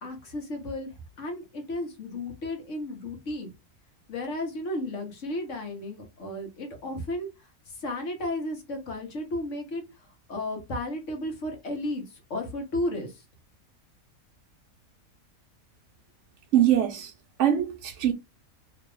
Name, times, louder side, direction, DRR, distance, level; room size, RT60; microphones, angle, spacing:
voice 1, 0.0-3.5 4.1-13.2, left 1 dB, 60° left, 1.4 m, -34 dB
voice 2, 16.5-17.1 17.4-18.1, right 11 dB, 65° right, 0.8 m, -22 dB
3.0 x 2.9 x 3.3 m
omnidirectional pair, 1.5 m